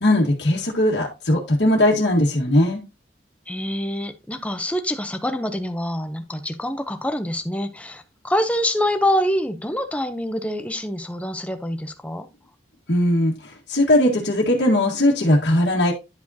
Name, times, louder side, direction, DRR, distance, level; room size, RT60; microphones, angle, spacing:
voice 1, 0.0-2.8 12.9-15.9, left 1 dB, 70° left, 1.7 m, -19 dB
voice 2, 3.5-12.3, left 1 dB, 5° left, 0.7 m, -25 dB
10.5 x 5.0 x 2.8 m
head